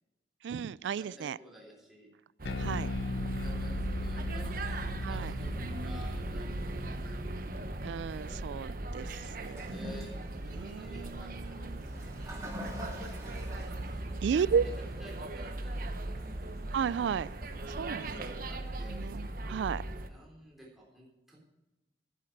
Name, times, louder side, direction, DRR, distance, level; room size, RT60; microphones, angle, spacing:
voice 1, 0.4-1.4 2.6-2.9 5.0-5.3 7.8-9.7 10.5-11.9 14.2-14.6 16.7-17.3 17.6-18.2 18.9-19.8, right 7 dB, 75° right, 21 dB, 0.3 m, -33 dB
voice 2, 1.0-2.1 3.4-6.8 7.1-7.4 9.0-10.1 10.4-14.7 15.0-16.4 17.8-19.1 20.0-21.4, right 1 dB, ahead, -4 dB, 3.4 m, -52 dB
sound 1, 2.4-20.1, right 2 dB, 50° right, 0.9 m, -38 dB
Bass guitar, 2.5-8.9, left 2 dB, 85° left, 0.6 m, -39 dB
Toilet flush, 9.5-18.7, equal, 15° right, 2.4 m, -48 dB
12.0 x 11.0 x 4.6 m, 1.0 s
head